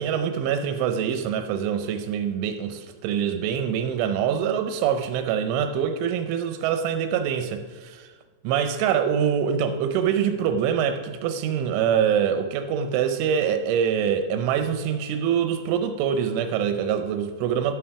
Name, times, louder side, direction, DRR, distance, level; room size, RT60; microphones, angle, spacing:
voice 1, 0.0-8.1 8.4-17.7, right 8 dB, 80° right, 8 dB, 2.9 m, -24 dB
12.0 x 7.6 x 5.8 m, 1.4 s
omnidirectional pair, 5.8 m